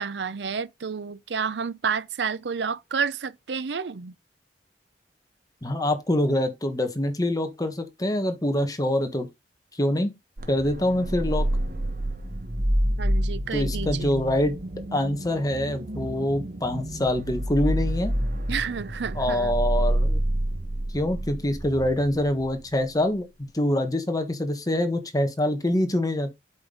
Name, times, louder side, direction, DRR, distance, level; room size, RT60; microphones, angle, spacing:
voice 1, 0.0-4.2 13.0-14.1 18.5-19.5, right 6 dB, 75° right, 0.6 m, -30 dB
voice 2, 5.6-9.3 9.7-10.1 10.5-11.5 13.5-14.6 14.9-18.1 19.1-20.2 20.9-26.3, left 1 dB, 20° left, 1.4 m, -25 dB
sound 1, 10.4-23.0, right 1 dB, 50° right, 1.3 m, -28 dB
8.2 x 5.3 x 3.9 m
head